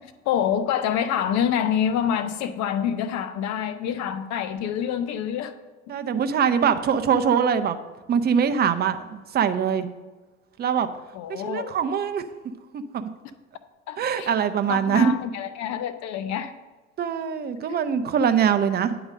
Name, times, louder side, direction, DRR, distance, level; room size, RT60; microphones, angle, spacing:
voice 1, 0.3-5.5 11.1-11.8 13.9-14.3 14.7-16.5, left 9 dB, 45° left, 10 dB, 0.7 m, -26 dB
voice 2, 5.9-7.8 8.1-9.9 10.6-10.9 11.3-12.2 12.7-13.1 14.0-15.1 17.0-19.0, right 7 dB, 25° right, 10 dB, 0.6 m, -23 dB
8.7 x 3.9 x 6.4 m, 1.3 s
hypercardioid pair, 75°, 39 cm